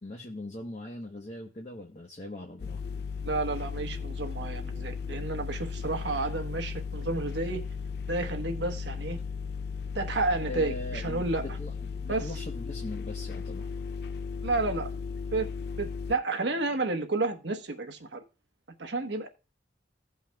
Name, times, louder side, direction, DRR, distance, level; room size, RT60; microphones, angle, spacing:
voice 1, 0.0-2.8 10.5-13.7, left 2 dB, 40° left, 0 dB, 0.9 m, -40 dB
sound 1, 2.6-16.1, left 5 dB, 60° left, 0.4 m, -36 dB
voice 2, 3.2-7.6 8.1-9.2 9.9-11.5 12.1-12.2 14.4-14.9 15.3-15.5 15.8-18.2 18.8-19.3, right 3 dB, 85° right, 6 dB, 1.1 m, -31 dB
16.5 x 5.6 x 2.3 m, 0.34 s
head